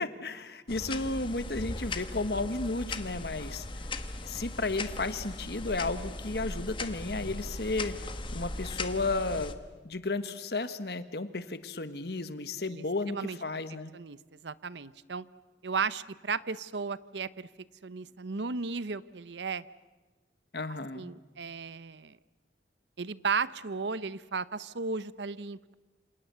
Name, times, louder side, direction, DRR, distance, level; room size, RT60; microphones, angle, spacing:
voice 1, 0.0-3.9 4.2-9.5 9.8-13.9 20.5-21.1, left 3 dB, 60° left, 11 dB, 1.4 m, -33 dB
sound 1, 0.7-9.5, left 2 dB, 30° left, 1.2 m, -38 dB
voice 2, 12.7-13.4 13.9-15.2 15.6-17.5 17.8-19.6 20.9-22.2 23.0-25.7, right 5 dB, 80° right, 17 dB, 0.8 m, -35 dB
27.5 x 27.5 x 6.9 m, 1.2 s
head